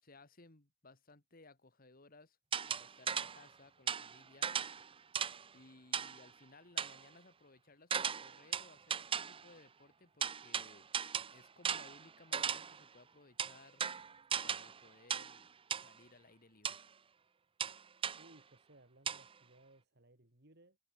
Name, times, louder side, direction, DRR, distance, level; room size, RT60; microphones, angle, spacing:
voice 1, 0.0-2.4 2.7-4.5 5.5-10.9 11.3-13.8 14.4-15.5 15.8-16.8, left 3 dB, 50° left, 2.2 m, -61 dB
sound 1, 2.5-3.5 3.9-5.5 5.9-6.3 6.8-7.0 7.9-9.5 10.2-12.8 13.4-14.8 15.1-15.4 15.7-15.9 16.6-16.8 17.6-18.3 19.1-19.2, right 7 dB, 30° right, 0.6 m, -37 dB
voice 2, 18.2-20.8, right 1 dB, 60° right, 3.3 m, -63 dB
head